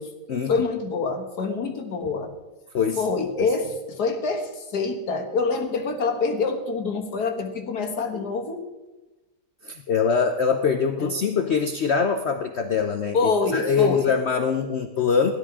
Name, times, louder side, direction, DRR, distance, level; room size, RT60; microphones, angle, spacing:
voice 1, 0.5-2.3 3.0-8.6 11.0-11.1 13.1-14.1, left 4 dB, 75° left, 4 dB, 2.1 m, -26 dB
voice 2, 9.6-15.3, left 6 dB, 55° left, 7 dB, 0.9 m, -23 dB
16.5 x 12.0 x 4.9 m, 1.1 s
omnidirectional pair, 1.7 m